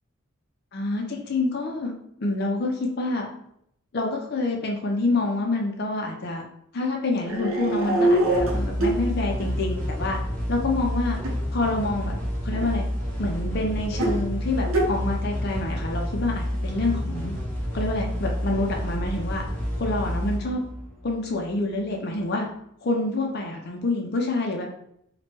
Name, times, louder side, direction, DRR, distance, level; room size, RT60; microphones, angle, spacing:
voice 1, 0.7-1.9 2.2-3.3 3.9-6.4 6.7-10.2 10.5-11.2 11.5-12.1 12.4-12.8 13.2-17.3 17.7-19.4 19.8-20.6 21.0-22.5 22.8-24.7, left 2 dB, 50° left, 0 dB, 0.5 m, -27 dB
sound 1, 7.2-9.0 9.4-9.5 11.1-11.3 12.5-12.7 13.9-14.1 14.6-14.9, right 1 dB, 75° right, 0.7 m, -23 dB
sound 2, 8.3-21.6, equal, 10° left, 0.8 m, -29 dB
3.0 x 2.2 x 2.9 m, 0.73 s
head